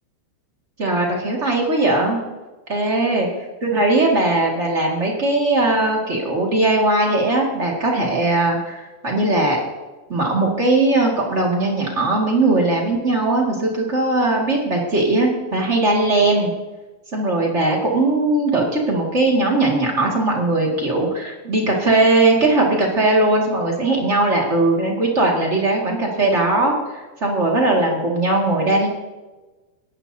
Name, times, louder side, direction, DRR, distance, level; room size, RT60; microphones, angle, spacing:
voice 1, 0.8-2.2 2.7-3.3 3.6-9.6 10.1-16.5 17.1-28.9, right 2 dB, 40° right, -2 dB, 0.9 m, -19 dB
18.0 x 12.0 x 2.8 m, 1.2 s
omnidirectional pair, 5.0 m